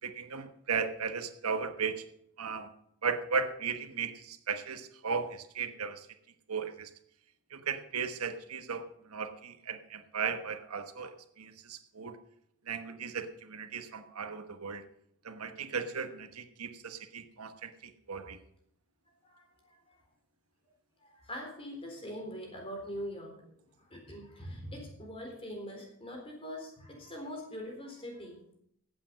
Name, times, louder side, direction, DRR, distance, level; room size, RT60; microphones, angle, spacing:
voice 1, 0.0-2.1 2.4-2.7 3.0-6.1 6.5-6.9 7.5-12.2 12.7-14.8 15.2-18.4, right 5 dB, 85° right, 8 dB, 1.2 m, -36 dB
voice 2, 19.2-20.0 21.0-28.4, equal, 25° left, 1 dB, 3.8 m, -43 dB
15.5 x 8.6 x 5.3 m, 0.71 s
head